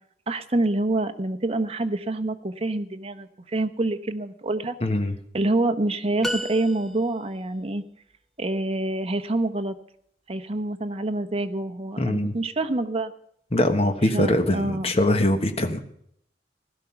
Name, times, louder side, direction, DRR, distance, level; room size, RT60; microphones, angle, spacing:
voice 1, 0.3-4.8 5.3-7.8 8.4-9.8 10.3-13.1 14.1-14.9, right 2 dB, 35° right, 8 dB, 0.9 m, -26 dB
voice 2, 4.8-5.1 12.0-12.4 13.5-15.8, left 1 dB, 35° left, 7 dB, 1.3 m, -22 dB
sound 1, 6.2-7.4, equal, ahead, 0.9 m, -32 dB
16.5 x 12.0 x 5.8 m, 0.69 s
head